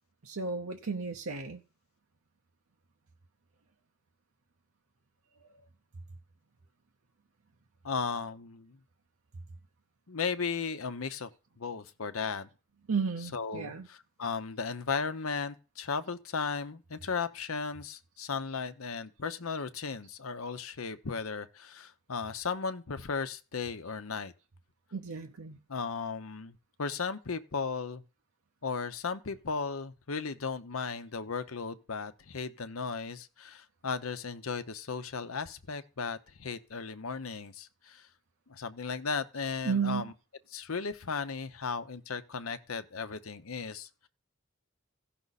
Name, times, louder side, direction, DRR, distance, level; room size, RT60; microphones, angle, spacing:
voice 1, 0.2-1.6 5.4-5.5 12.9-13.9 24.9-25.6 39.6-40.1, right 5 dB, 90° right, 0.8 m, -33 dB
voice 2, 7.8-8.8 10.1-11.3 11.6-12.5 13.3-24.3 25.7-28.0 28.6-38.1 38.5-40.1 40.5-44.1, left 5 dB, 90° left, 0.9 m, -36 dB
15.5 x 5.9 x 4.1 m
head